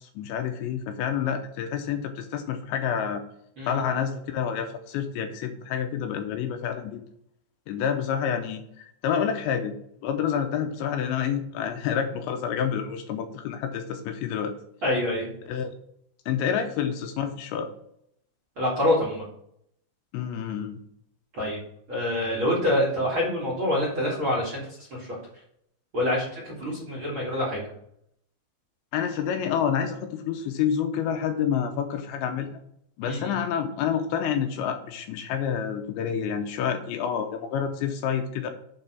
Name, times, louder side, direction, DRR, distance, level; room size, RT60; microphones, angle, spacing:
voice 1, 0.0-3.2 3.7-7.0 7.7-9.7 10.0-14.5 15.5-15.7 16.3-17.7 20.1-20.8 28.9-32.6 33.0-38.5, left 8 dB, 80° left, 6 dB, 2.8 m, -28 dB
voice 2, 14.8-15.3 18.6-19.2 21.3-21.6 21.9-25.2 25.9-27.7 33.0-33.3, left 1 dB, 40° right, -5 dB, 2.1 m, -26 dB
7.5 x 5.6 x 5.9 m, 0.72 s
omnidirectional pair, 5.4 m